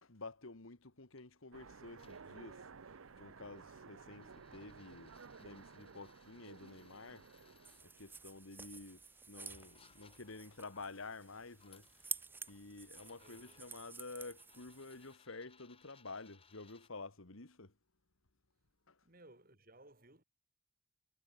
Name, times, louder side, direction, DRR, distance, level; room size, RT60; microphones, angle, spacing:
voice 1, 0.0-2.7 3.2-7.5 7.8-12.1 12.5-17.7 18.9-19.0, left 3 dB, 70° left, 1.8 m, -51 dB
sound 1, 1.2-1.3 2.0-7.8 8.9-9.0 9.4-10.9 11.5-12.6 12.9-16.9, left 6 dB, 25° left, 2.8 m, -68 dB
Train, 1.5-8.4, right 5 dB, 75° right, 0.8 m, -56 dB
sound 2, 7.6-15.1, right 4 dB, 10° right, 0.7 m, -50 dB
voice 2, 13.2-13.7 19.0-20.2, right 1 dB, 40° right, 5.7 m, -61 dB
head